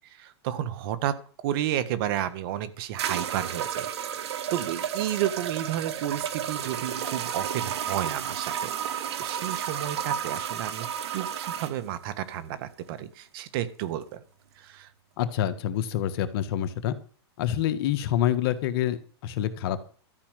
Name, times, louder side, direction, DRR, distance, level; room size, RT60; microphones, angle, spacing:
voice 1, 0.2-1.2 1.4-3.9 4.5-10.9 11.1-14.2 14.6-14.9, right 11 dB, 60° right, 13 dB, 1.6 m, -31 dB
sound 1, 2.2-2.3 3.0-11.7, right 9 dB, 75° right, 1.6 m, -32 dB
voice 2, 15.2-16.9 17.4-19.8, left 11 dB, 60° left, 10 dB, 1.7 m, -27 dB
13.0 x 6.1 x 9.2 m, 0.42 s
hypercardioid pair, 120°, 14 cm